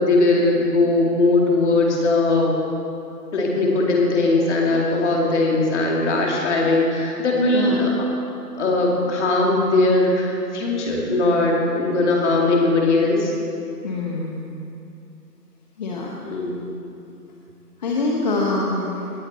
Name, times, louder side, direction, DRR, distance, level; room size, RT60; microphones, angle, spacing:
voice 1, 0.0-2.5 3.3-7.9 8.6-13.3 16.2-16.7, left 2 dB, 45° left, -1 dB, 2.6 m, -19 dB
voice 2, 7.5-7.9 13.8-14.4 15.8-16.1 17.8-19.1, left 2 dB, 25° left, -2 dB, 0.9 m, -24 dB
18.5 x 8.0 x 4.2 m, 2.7 s
hypercardioid pair, 150°, 48 cm